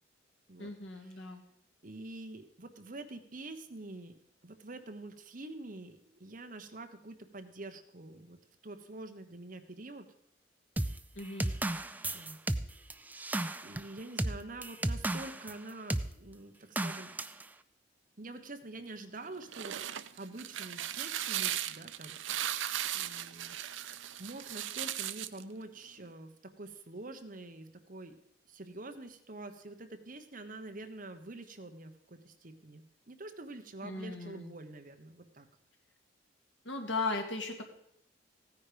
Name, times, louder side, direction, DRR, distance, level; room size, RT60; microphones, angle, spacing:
voice 1, 0.6-1.4 11.2-11.5 33.8-34.5 36.6-37.6, left 3 dB, 80° left, 3 dB, 2.3 m, -37 dB
voice 2, 1.8-8.4 8.6-10.1 12.1-12.4 13.6-17.1 18.2-19.8 20.2-22.2 22.9-28.2 28.5-35.5, right 2 dB, 45° right, 7 dB, 1.2 m, -46 dB
sound 1, 10.8-15.5 15.9-16.1 16.8-17.4, right 1 dB, 10° right, 0.4 m, -34 dB
sound 2, 19.3-25.4, right 11 dB, 85° right, 0.6 m, -37 dB
16.0 x 9.6 x 5.1 m, 0.71 s
head